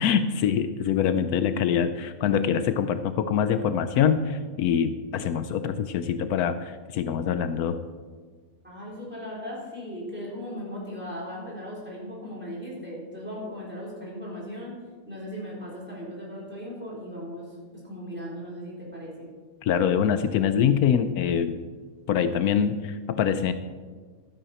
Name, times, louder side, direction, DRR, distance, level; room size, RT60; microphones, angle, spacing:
voice 1, 0.0-7.8 19.6-21.6 22.1-23.5, left 8 dB, 80° left, 10 dB, 1.1 m, -24 dB
voice 2, 8.6-14.8 15.1-17.5 17.8-19.3, equal, 5° right, -5 dB, 3.8 m, -37 dB
12.5 x 9.8 x 4.3 m, 1.5 s
omnidirectional pair, 1.6 m